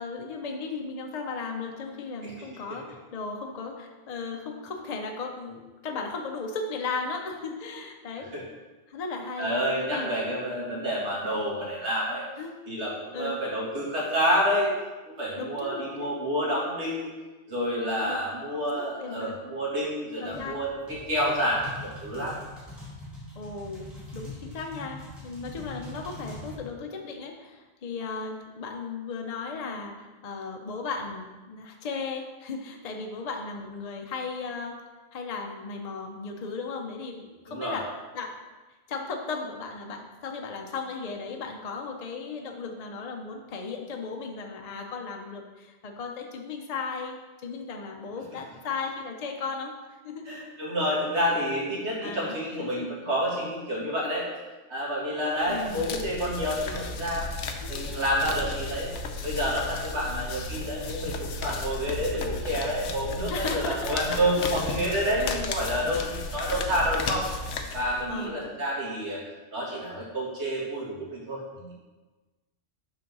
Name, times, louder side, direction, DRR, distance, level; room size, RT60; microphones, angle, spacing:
voice 1, 0.0-8.3 8.9-10.1 12.4-12.6 13.1-13.4 15.4-16.1 18.1-18.2 18.5-18.7 19.0-19.3 20.2-20.6 23.4-34.8 35.1-37.9 38.1-38.3 38.9-47.2 47.4-49.7 50.0-50.3 52.0-52.3 52.6-52.9 55.5-55.8 57.5-57.8 63.3-65.5 68.1-68.5, left 4 dB, 40° left, 2 dB, 0.7 m, -36 dB
voice 2, 9.4-12.2 12.7-14.7 15.2-17.1 17.5-22.4 37.5-37.8 50.3-54.3 54.7-57.3 57.7-58.9 59.2-67.2 67.7-69.2 69.5-71.7, equal, 70° right, -6 dB, 2.3 m, -29 dB
sound 1, 20.3-26.6, left 1 dB, ahead, 2.2 m, -43 dB
sound 2, 55.4-68.3, left 3 dB, 90° left, 1.0 m, -34 dB
6.0 x 3.9 x 6.0 m, 1.2 s
omnidirectional pair, 1.2 m